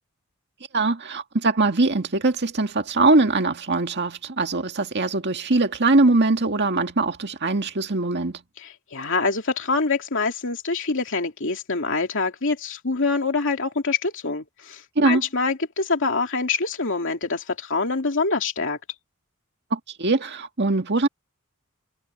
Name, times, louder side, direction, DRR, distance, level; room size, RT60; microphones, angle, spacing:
voice 1, 0.7-8.4 15.0-15.2 19.7-21.1, right 3 dB, 55° right, 2.0 m, -22 dB
voice 2, 8.6-18.8, left 4 dB, 60° left, 2.6 m, -25 dB
head